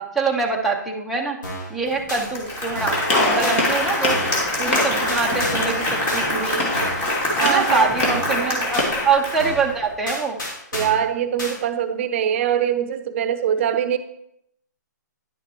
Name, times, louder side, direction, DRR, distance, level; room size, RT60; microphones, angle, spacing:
voice 1, 0.2-1.4 1.7-3.0 3.2-4.2 4.6-6.7 7.4-10.4, right 4 dB, ahead, -3 dB, 0.7 m, -24 dB
sound 1, 1.4-1.7 2.1-2.2 2.8-3.1 3.4-3.6 4.1-4.4 4.7-5.7 6.1-6.2 6.7-7.1 7.4-7.6 8.1-8.4 8.7-8.9 9.4-9.7 10.1-11.0 11.4-11.6, equal, 85° left, 3.1 m, -31 dB
Applause, 1.9-2.0 2.2-9.8, left 1 dB, 25° left, 2.6 m, -25 dB
Gunshot gunfire, 3.1-9.1, left 2 dB, 45° left, 2.1 m, -26 dB
voice 2, 7.4-8.7 10.7-14.0, right 9 dB, 40° right, 11 dB, 0.7 m, -23 dB
10.5 x 6.6 x 3.1 m, 0.77 s
hypercardioid pair, 150°, 10 cm